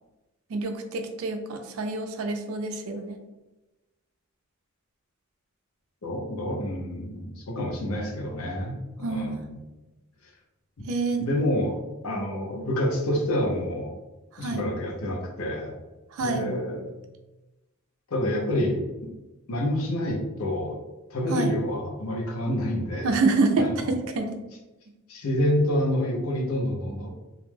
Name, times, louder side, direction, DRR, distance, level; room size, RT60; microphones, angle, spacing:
voice 1, 0.5-3.2 9.0-9.4 10.9-11.2 14.4-14.6 16.1-16.4 21.3-21.5 23.0-24.3, right 3 dB, 80° right, 6 dB, 0.4 m, -27 dB
voice 2, 6.0-9.6 10.8-10.9 11.2-13.9 14.4-15.8 16.2-16.9 18.1-19.1 19.5-20.8 21.1-23.1 23.6-23.9 25.1-27.1, left 1 dB, 80° left, 0 dB, 0.6 m, -28 dB
2.4 x 2.1 x 3.1 m, 1.1 s
head